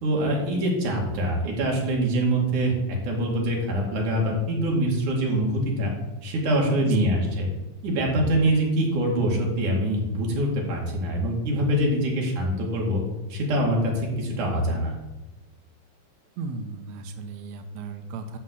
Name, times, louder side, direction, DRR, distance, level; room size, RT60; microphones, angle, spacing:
voice 1, 0.0-2.7 3.0-5.9 6.2-7.5 7.8-13.0 13.3-14.9, right 1 dB, 60° right, -1 dB, 3.6 m, -24 dB
voice 2, 16.4-18.4, right 4 dB, 75° right, 6 dB, 1.6 m, -35 dB
11.0 x 4.5 x 7.8 m, 1.1 s
omnidirectional pair, 4.1 m